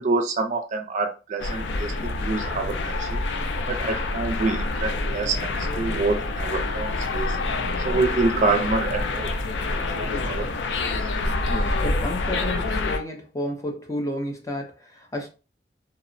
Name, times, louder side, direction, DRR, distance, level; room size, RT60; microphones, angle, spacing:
voice 1, 0.0-3.2 3.7-7.4 7.8-9.3 9.6-10.5, right 3 dB, 45° right, 0.4 m, -27 dB
sound 1, 1.4-13.0, left 2 dB, 75° left, 0.4 m, -27 dB
voice 2, 11.5-15.3, left 1 dB, 20° left, 0.5 m, -31 dB
2.8 x 2.0 x 2.5 m
head